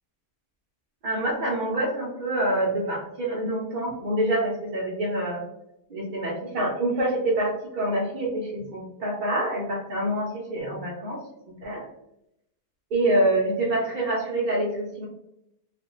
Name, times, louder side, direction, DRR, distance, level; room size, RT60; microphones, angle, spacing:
voice 1, 1.0-5.4 5.9-11.2 11.6-11.9 12.9-15.1, right 1 dB, 65° right, -4 dB, 0.4 m, -26 dB
2.4 x 2.3 x 2.9 m, 0.81 s
omnidirectional pair, 1.5 m